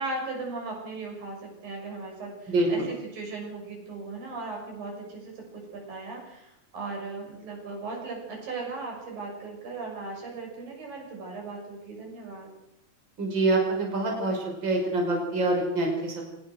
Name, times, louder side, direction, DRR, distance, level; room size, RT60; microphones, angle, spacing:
voice 1, 0.0-12.5, right 3 dB, 70° right, 0 dB, 8.0 m, -37 dB
voice 2, 2.5-2.9 13.2-16.2, right 2 dB, 30° right, 1 dB, 6.2 m, -26 dB
23.5 x 20.5 x 6.3 m, 0.85 s
omnidirectional pair, 4.2 m